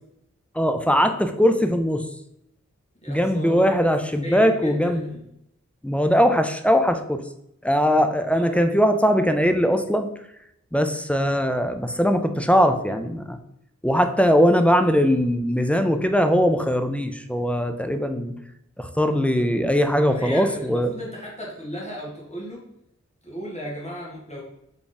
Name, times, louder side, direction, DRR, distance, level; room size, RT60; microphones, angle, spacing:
voice 1, 0.5-2.1 3.1-5.1 5.8-7.2 7.6-10.1 10.7-13.4 13.8-18.3 18.8-20.9, equal, 5° left, 7 dB, 0.4 m, -20 dB
voice 2, 3.0-5.2 8.3-8.8 19.3-19.6 20.1-22.6 23.2-24.4, equal, 25° left, -5 dB, 1.6 m, -36 dB
3.6 x 3.5 x 4.0 m, 0.79 s
wide cardioid pair, 45°, 29 cm